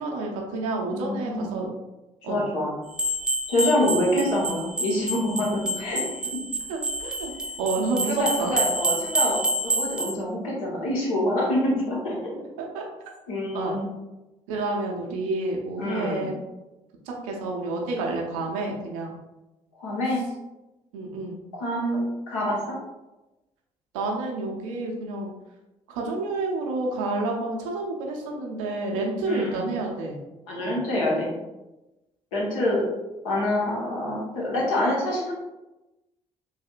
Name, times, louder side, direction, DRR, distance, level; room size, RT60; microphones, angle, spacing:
voice 1, 0.0-1.7 2.2-2.4 3.8-4.0 6.7-7.3 7.6-8.6 12.7-12.8 13.5-13.8 14.5-16.3 17.1-19.2 20.9-21.4 23.9-25.3 25.9-30.2 30.6-30.8, right 2 dB, 75° right, 0 dB, 0.6 m, -29 dB
voice 2, 0.9-1.6 2.3-2.7 3.5-6.0 6.3-6.4 7.8-12.4 13.3-13.9 15.8-16.3 19.8-20.2 21.5-22.8 29.3-29.7 30.5-31.3 32.3-32.8 33.2-35.3, left 1 dB, 75° left, -4 dB, 1.0 m, -26 dB
sound 1, 2.9-10.2, right 1 dB, 5° right, 0.4 m, -28 dB
3.3 x 2.7 x 2.4 m, 1.0 s
figure-of-eight pair, 45°, 17 cm